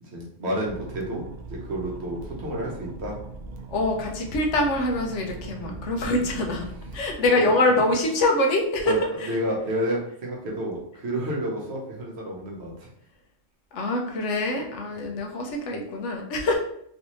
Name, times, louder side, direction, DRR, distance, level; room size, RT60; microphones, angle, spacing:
voice 1, 0.0-3.2 5.6-5.8 7.3-7.5 8.9-9.0 9.3-12.9 14.9-15.1, equal, 65° right, -3 dB, 1.1 m, -30 dB
sound 1, 0.6-7.2, right 3 dB, 85° right, 0.3 m, -40 dB
voice 2, 3.7-6.7 6.9-9.4 13.7-16.6, left 2 dB, 75° left, 2 dB, 1.0 m, -24 dB
3.2 x 2.7 x 2.9 m, 0.71 s
omnidirectional pair, 1.3 m